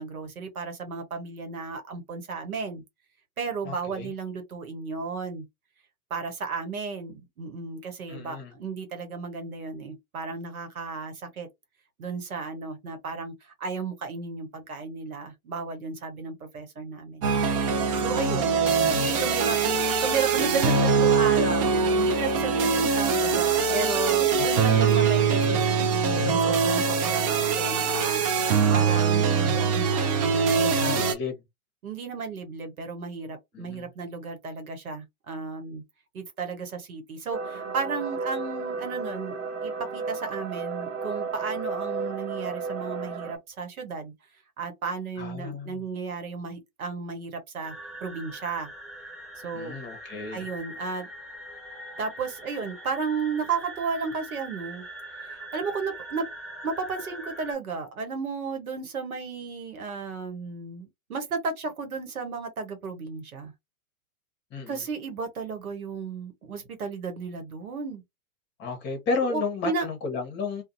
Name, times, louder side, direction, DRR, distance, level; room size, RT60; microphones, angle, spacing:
voice 1, 0.0-2.8 3.4-5.4 6.1-11.5 12.0-17.3 18.0-18.5 18.9-19.6 20.0-31.0 31.8-35.8 36.1-39.4 39.6-44.1 44.6-47.7 48.0-48.7 49.4-49.8 50.3-51.1 52.0-54.9 55.2-56.3 56.6-63.5 64.7-68.0 69.3-69.9, right 5 dB, 80° right, 1.1 m, -34 dB
voice 2, 3.6-4.1 8.1-8.5 24.4-25.0 30.8-31.4 33.5-33.9 45.2-45.9 49.5-50.5 64.5-64.8 68.6-70.6, left 4 dB, 25° left, 1.0 m, -33 dB
sound 1, 17.2-31.1, right 5 dB, 25° right, 0.4 m, -23 dB
sound 2, 37.3-43.4, right 4 dB, 55° right, 0.9 m, -33 dB
sound 3, 47.6-57.5, right 1 dB, ahead, 1.3 m, -42 dB
2.5 x 2.3 x 2.5 m
hypercardioid pair, 110°, 43 cm